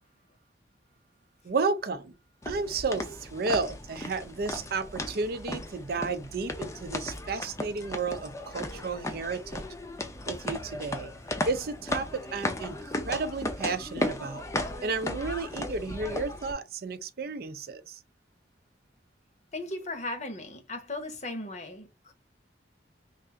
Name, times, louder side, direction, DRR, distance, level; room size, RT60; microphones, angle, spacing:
voice 1, 1.4-2.2 2.5-9.6 10.3-11.1 11.5-14.4 14.8-18.0, right 4 dB, 55° right, 0.5 m, -32 dB
sound 1, 2.4-16.5, left 1 dB, 15° left, 0.5 m, -36 dB
voice 2, 19.5-22.1, left 2 dB, 40° left, 0.9 m, -37 dB
3.3 x 2.5 x 3.6 m
head